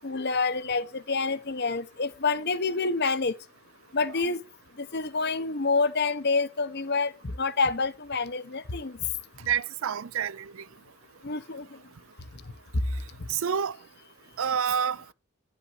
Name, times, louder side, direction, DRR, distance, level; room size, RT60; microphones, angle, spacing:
voice 1, 0.0-3.3 3.9-4.4 4.8-8.9 11.2-11.7, left 4 dB, 50° left, 0.8 m, -27 dB
voice 2, 9.5-10.6 13.3-13.8 14.4-15.0, right 8 dB, 65° right, 0.4 m, -28 dB
11.0 x 5.5 x 4.9 m
head